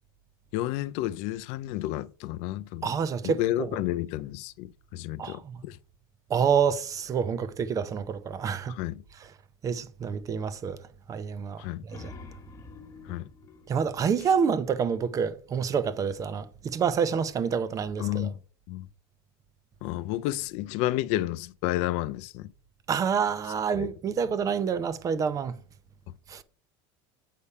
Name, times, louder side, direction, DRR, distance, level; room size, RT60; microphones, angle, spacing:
voice 1, 0.5-2.9 3.2-5.8 8.7-9.0 11.6-11.8 13.0-13.3 18.0-18.4 18.7-18.9 19.8-22.5 23.7-23.9, left 15 dB, 60° left, 0.4 m, -31 dB
voice 2, 2.8-3.7 5.2-5.6 6.3-8.8 9.6-10.8 11.1-12.1 13.7-18.3 22.9-25.5 26.3-26.4, right 6 dB, 25° right, 0.6 m, -28 dB
sound 1, 11.8-15.0, left 3 dB, 25° left, 1.2 m, -48 dB
8.4 x 3.4 x 5.5 m
supercardioid pair, 140°, 12 cm